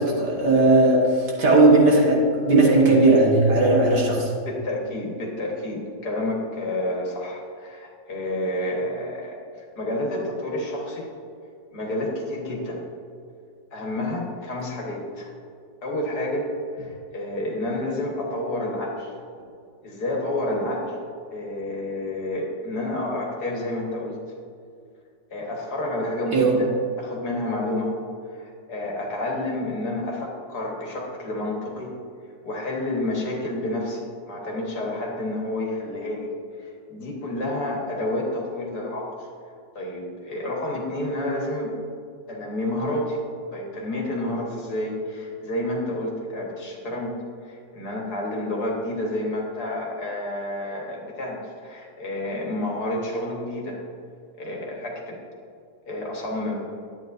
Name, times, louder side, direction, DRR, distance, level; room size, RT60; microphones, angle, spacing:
voice 1, 0.0-4.2 26.3-26.6, right 2 dB, 65° right, -3 dB, 2.2 m, -17 dB
voice 2, 4.4-9.4 9.8-11.1 11.7-12.8 13.7-15.3 15.8-19.2 19.8-21.0 21.3-24.2 25.3-26.7 27.0-27.9 28.3-31.9 32.4-36.3 36.6-39.3 39.8-41.7 42.3-43.2 43.5-47.1 47.4-53.8 54.4-55.2 55.9-56.7, left 1 dB, 60° left, -2 dB, 2.0 m, -29 dB
11.0 x 9.1 x 2.6 m, 2.3 s
omnidirectional pair, 1.9 m